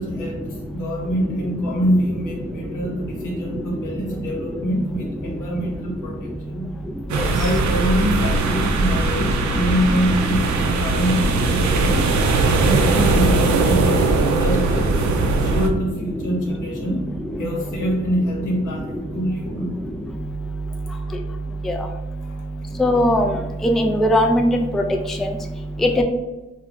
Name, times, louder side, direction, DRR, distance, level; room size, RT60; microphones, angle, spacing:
voice 1, 0.0-6.7 7.3-12.0 12.4-17.0 17.4-19.7 22.2-22.4, equal, 75° left, -1 dB, 0.9 m, -25 dB
sound 1, 7.1-15.7, right 3 dB, 65° right, 0.5 m, -20 dB
voice 2, 22.8-23.3 23.6-24.8 25.8-26.0, left 1 dB, ahead, 3 dB, 0.3 m, -18 dB
2.3 x 2.2 x 3.6 m, 1.1 s
supercardioid pair, 45°, 31 cm